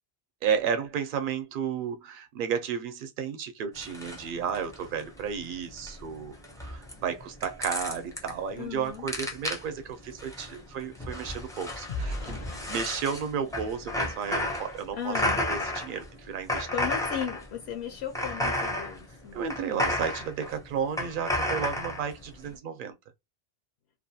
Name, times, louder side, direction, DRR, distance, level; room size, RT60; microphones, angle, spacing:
voice 1, 0.4-6.4 6.6-12.4 12.7-16.7 19.3-23.0, right 7 dB, 60° right, 0.7 m, -33 dB
sound 1, 3.8-22.5, left 1 dB, 5° left, 0.3 m, -33 dB
voice 2, 8.6-9.1 14.9-15.4 16.7-19.4 22.5-22.6, left 8 dB, 80° left, 0.9 m, -36 dB
sound 2, 9.4-14.8 15.3-15.5 15.9-16.1, left 1 dB, 55° left, 0.5 m, -42 dB
2.5 x 2.2 x 2.7 m
omnidirectional pair, 1.1 m